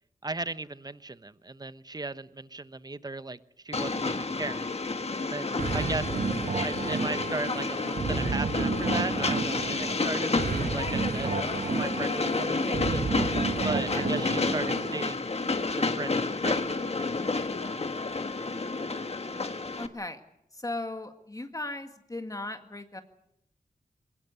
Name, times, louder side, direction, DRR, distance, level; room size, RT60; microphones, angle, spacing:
voice 1, 0.2-3.4 3.6-4.7 5.2-6.1 6.6-10.3 10.7-11.3 11.8-13.1 13.6-15.3 15.8-17.1, right 3 dB, 25° right, 14 dB, 1.0 m, -36 dB
Train, 3.7-19.9, left 3 dB, 45° left, 1.7 m, -30 dB
voice 2, 5.5-5.9 9.8-10.1 13.8-14.1 19.8-20.2 20.5-23.0, left 2 dB, 25° left, 7 dB, 1.8 m, -37 dB
sound 1, 5.6-15.1, right 4 dB, 65° right, 1.2 m, -32 dB
22.0 x 20.0 x 8.2 m, 0.77 s
wide cardioid pair, 85°, 15 cm